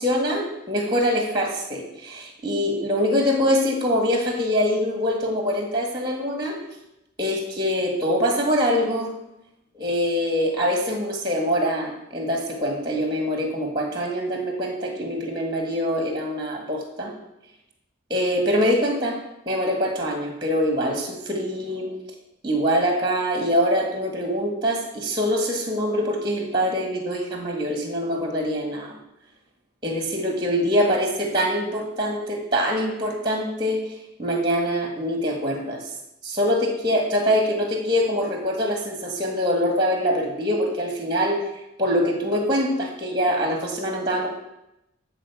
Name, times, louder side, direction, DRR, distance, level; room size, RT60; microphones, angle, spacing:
voice 1, 0.0-6.6 7.2-9.1 9.8-17.1 18.1-19.2 19.5-21.9 22.4-28.9 29.8-33.8 34.2-35.8 36.2-41.4 41.8-44.3, equal, 20° right, 2 dB, 1.8 m, -24 dB
13.0 x 4.4 x 7.1 m, 0.89 s
head